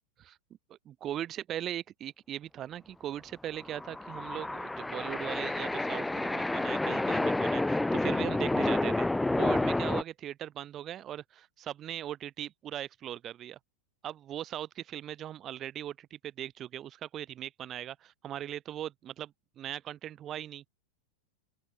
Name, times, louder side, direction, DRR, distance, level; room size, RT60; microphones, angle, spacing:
voice 1, 0.7-9.1 9.3-13.6 14.0-20.6, right 11 dB, 30° right, 1.2 m, -39 dB
sound 1, 3.6-10.0, left 2 dB, 5° left, 0.4 m, -29 dB
open air
figure-of-eight pair, 90°, 0 cm